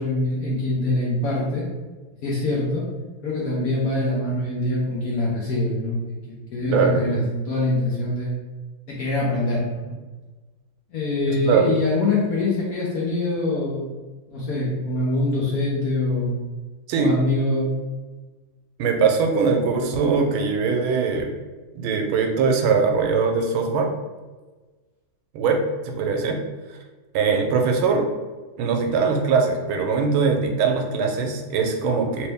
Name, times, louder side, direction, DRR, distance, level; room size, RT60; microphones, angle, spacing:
voice 1, 0.0-1.7 2.2-2.9 3.2-8.3 8.9-10.0 10.9-13.8 14.3-16.4 17.0-17.7, left 2 dB, 60° left, -5 dB, 0.9 m, -24 dB
voice 2, 6.6-7.2 11.3-11.7 16.9-17.1 18.8-21.3 21.7-23.9 25.3-25.6 25.8-26.4 27.1-28.1 28.6-32.3, right 5 dB, 85° right, 3 dB, 1.4 m, -21 dB
3.2 x 3.0 x 3.3 m, 1.3 s
omnidirectional pair, 2.2 m